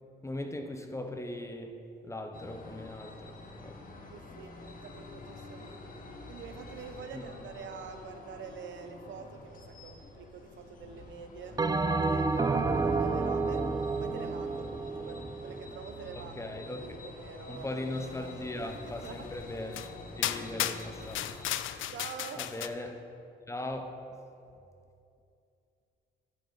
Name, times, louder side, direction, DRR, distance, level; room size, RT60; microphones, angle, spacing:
voice 1, 0.2-3.8 7.1-7.2 16.4-17.0 17.5-19.9 20.2-21.3 22.4-23.0 23.5-24.0, left 1 dB, 15° left, 5 dB, 0.8 m, -39 dB
sound 1, 2.3-21.5, left 3 dB, 45° left, 1.3 m, -48 dB
voice 2, 4.1-5.8 6.3-11.6 12.0-13.6 14.0-16.4 16.7-18.4 18.9-19.3 21.9-22.5, right 6 dB, 70° right, 7 dB, 0.8 m, -46 dB
Bell, 11.6-16.2, right 3 dB, 20° right, 0.4 m, -30 dB
sound 2, 19.0-19.1 19.7-19.9 20.2-22.7, left 12 dB, 80° left, 0.4 m, -34 dB
10.5 x 8.2 x 4.1 m, 2.6 s
cardioid pair, 90°, 20 cm